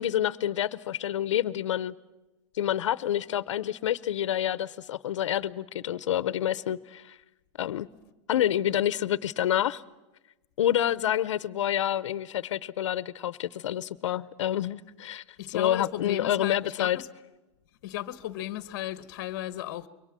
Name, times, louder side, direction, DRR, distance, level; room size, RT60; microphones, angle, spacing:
voice 1, 0.0-1.9 2.5-7.2 7.6-7.9 8.3-9.8 10.6-17.0, left 11 dB, 90° left, 0.8 m, -28 dB
voice 2, 15.4-17.1 17.8-19.9, left 13 dB, 40° left, 1.2 m, -35 dB
27.0 x 23.5 x 7.5 m
supercardioid pair, 175°, 15 cm